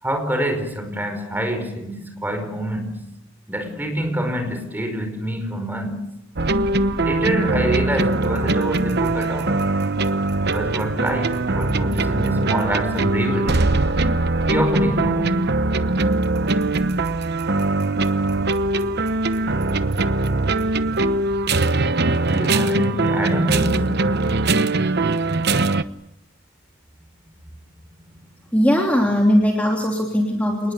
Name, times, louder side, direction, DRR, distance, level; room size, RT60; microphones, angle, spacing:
voice 1, 0.0-3.1 3.5-6.1 7.0-9.6 10.4-13.6 14.4-15.4 22.2-24.0, right 1 dB, 10° right, 6 dB, 5.1 m, -26 dB
sound 1, 6.4-25.8, right 2 dB, 55° right, 1.0 m, -21 dB
voice 2, 28.5-30.7, equal, 10° left, 0 dB, 3.1 m, -19 dB
27.5 x 20.0 x 8.3 m, 0.85 s
head